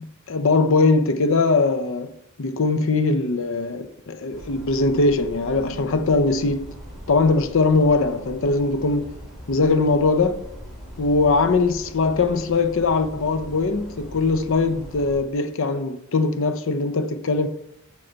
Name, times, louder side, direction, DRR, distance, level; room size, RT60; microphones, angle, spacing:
voice 1, 0.0-2.1 2.4-6.7 7.1-9.1 9.5-10.5 11.0-17.5, left 3 dB, 60° left, 0.6 m, -21 dB
sound 1, 4.3-15.2, equal, ahead, 3.2 m, -40 dB
7.7 x 6.4 x 4.0 m
head